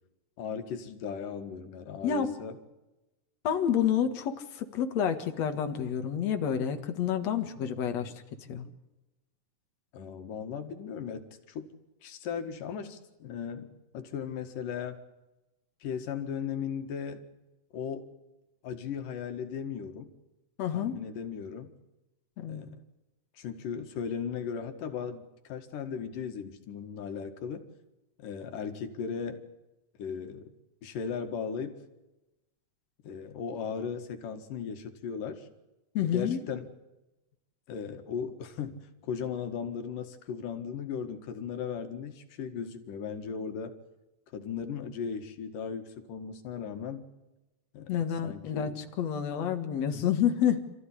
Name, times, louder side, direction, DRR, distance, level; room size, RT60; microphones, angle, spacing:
voice 1, 0.4-2.6 8.0-8.1 9.9-11.7 12.0-15.0 15.8-17.3 17.7-18.1 18.6-20.1 20.7-21.7 22.5-22.8 23.4-27.7 28.2-29.4 30.0-30.4 30.8-31.8 33.0-35.5 36.0-36.7 37.7-38.8 39.0-43.8 44.3-47.1 47.7-47.9 48.2-48.8, left 7 dB, 90° left, 7 dB, 3.4 m, -37 dB
voice 2, 2.0-2.3 3.4-8.1 8.5-8.7 20.6-20.9 22.4-22.6 35.9-36.4 47.9-50.6, left 9 dB, 60° left, 7 dB, 2.8 m, -29 dB
28.0 x 14.5 x 9.9 m, 1.0 s
omnidirectional pair, 3.7 m